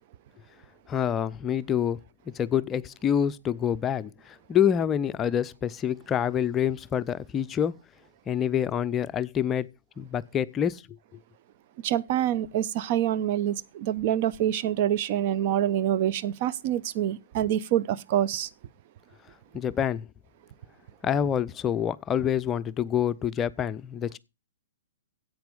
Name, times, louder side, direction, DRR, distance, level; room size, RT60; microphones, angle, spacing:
voice 1, 0.9-2.0 2.3-7.8 8.3-9.7 10.0-10.8 19.5-20.1 21.0-24.2, left 9 dB, 20° left, 0.5 m, -27 dB
voice 2, 11.8-18.5, right 11 dB, 40° right, 0.7 m, -26 dB
10.5 x 8.3 x 5.2 m
figure-of-eight pair, 115°, 0 cm